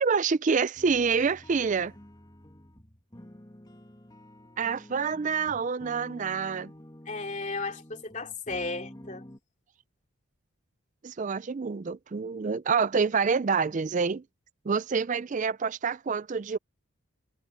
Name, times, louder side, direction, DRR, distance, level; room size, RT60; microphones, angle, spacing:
voice 1, 0.0-1.9 4.6-6.7 11.0-14.2 14.6-16.6, right 5 dB, 35° right, 0.4 m, -27 dB
sound 1, 0.8-9.4, left 1 dB, 20° left, 1.8 m, -49 dB
voice 2, 7.1-9.2, left 3 dB, 35° left, 3.0 m, -34 dB
head